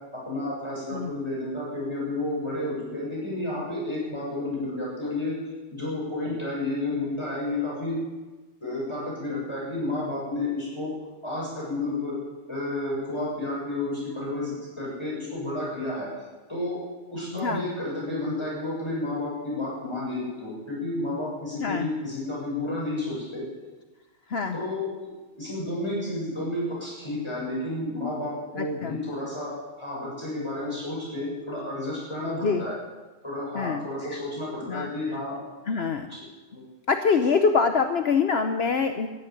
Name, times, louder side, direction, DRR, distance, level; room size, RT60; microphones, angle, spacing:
voice 1, 0.1-5.3 5.7-8.0 8.6-10.9 11.2-12.1 12.5-16.1 16.5-16.8 17.1-23.4 24.5-32.8 33.2-35.4 36.1-36.2 36.5-36.6, left 2 dB, 20° left, -6 dB, 6.7 m, -31 dB
voice 2, 17.3-17.7 21.6-21.9 24.3-24.6 28.6-29.0 32.4-32.6 33.5-34.2 34.7-35.2 35.7-36.1 36.9-39.1, left 5 dB, 55° left, 7 dB, 1.0 m, -25 dB
13.5 x 10.5 x 9.2 m, 1.2 s
omnidirectional pair, 1.3 m